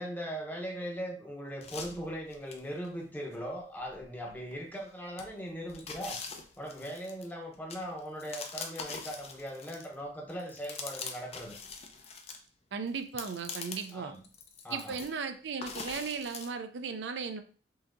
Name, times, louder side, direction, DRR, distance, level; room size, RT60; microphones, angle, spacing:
voice 1, 0.0-6.2 6.6-11.6 13.9-14.2 14.6-15.0, equal, 10° left, 0 dB, 0.9 m, -39 dB
sound 1, 1.6-2.9 3.3-3.4 3.9-4.8 5.2-10.0 10.3-12.4 12.9-14.0 14.2-15.2 15.6-16.5, left 5 dB, 35° left, 0.6 m, -43 dB
voice 2, 12.7-14.1 14.7-17.4, right 5 dB, 70° right, 7 dB, 0.4 m, -36 dB
5.6 x 2.8 x 2.5 m, 0.40 s
head